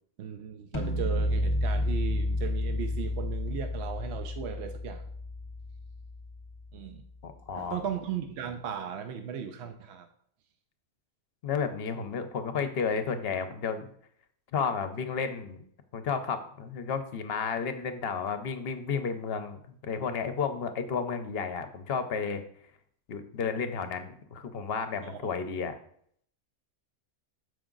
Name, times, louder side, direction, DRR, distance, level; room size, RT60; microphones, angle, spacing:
voice 1, 0.2-5.0 6.7-7.0 7.5-10.1 25.0-25.2, right 8 dB, 65° right, 7 dB, 0.8 m, -37 dB
sound 1, 0.7-6.7, left 1 dB, 30° left, 0.7 m, -31 dB
voice 2, 7.2-7.8 11.4-13.9 14.5-15.6 15.9-22.4 23.1-25.7, left 6 dB, 60° left, 9 dB, 0.9 m, -32 dB
7.0 x 5.1 x 3.8 m, 0.64 s
omnidirectional pair, 1.3 m